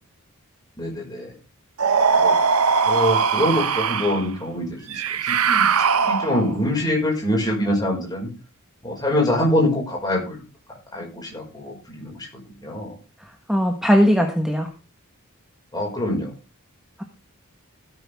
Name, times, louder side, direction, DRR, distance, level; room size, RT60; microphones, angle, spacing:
voice 1, 0.8-1.3 2.1-2.4 2.9-5.7 6.1-8.3 8.8-10.4 10.9-13.0 15.7-16.3, left 1 dB, 20° left, 0 dB, 5.7 m, -24 dB
sound 1, 1.8-4.2 4.9-6.6, right 5 dB, 80° right, 1.0 m, -20 dB
voice 2, 13.5-14.7, equal, ahead, 3 dB, 1.5 m, -18 dB
17.0 x 10.0 x 3.7 m, 0.32 s
head